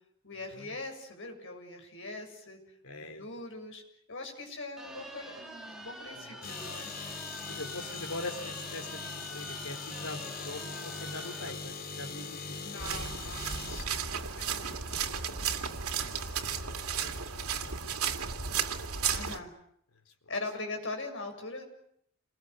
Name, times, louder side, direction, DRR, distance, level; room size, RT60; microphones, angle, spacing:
voice 1, 0.2-2.6 3.0-3.8 4.1-6.9 7.5-8.0 12.6-14.7 15.3-15.6 19.1-19.5 20.3-21.6, left 2 dB, 60° left, 4 dB, 7.3 m, -42 dB
voice 2, 2.8-3.2 6.1-6.5 7.5-12.7 14.2-14.5 16.2-16.6 17.0-18.6, left 2 dB, 80° left, 5 dB, 4.1 m, -43 dB
sound 1, 4.8-11.5, right 1 dB, ahead, 3.5 m, -46 dB
sound 2, 6.4-13.8, left 4 dB, 45° left, 2.6 m, -41 dB
sound 3, 12.8-19.4, right 7 dB, 85° right, 2.4 m, -34 dB
29.0 x 21.5 x 8.1 m, 0.70 s
head